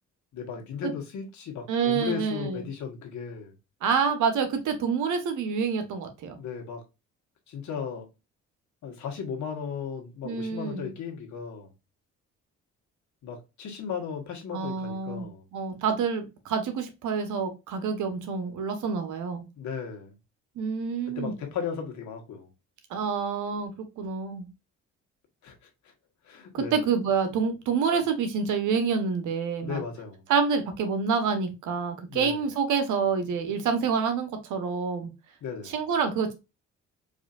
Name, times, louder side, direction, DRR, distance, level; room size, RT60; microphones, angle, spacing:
voice 1, 0.3-3.5 6.4-6.8 7.5-8.1 8.8-11.7 13.2-15.4 19.6-20.1 21.1-22.5 25.4-25.6 26.2-26.8 29.6-30.2 32.1-32.4 35.4-35.8, left 7 dB, 70° left, 1.5 m, -36 dB
voice 2, 1.7-2.6 3.8-6.4 10.2-10.9 14.5-15.3 15.5-19.5 20.6-21.3 22.9-23.7 24.0-24.5 26.5-29.8 30.3-35.1 35.6-36.3, right 6 dB, 80° right, 1.1 m, -27 dB
4.8 x 2.6 x 2.4 m
cardioid pair, 90°, 30 cm